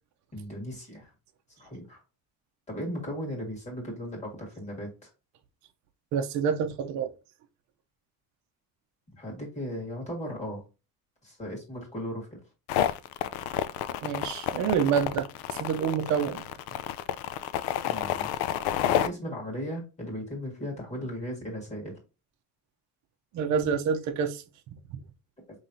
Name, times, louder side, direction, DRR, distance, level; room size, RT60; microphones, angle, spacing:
voice 1, 0.3-1.1 1.6-2.0 2.7-5.1 9.2-10.6 11.2-12.3 17.9-18.3 18.9-22.0, equal, 20° left, 1.9 m, -36 dB
voice 2, 6.1-7.1 14.0-16.4 23.3-24.4, right 7 dB, 50° right, 0.7 m, -27 dB
sound 1, 12.7-19.1, left 12 dB, 75° left, 0.6 m, -29 dB
5.4 x 3.2 x 2.7 m
cardioid pair, 175°, 37 cm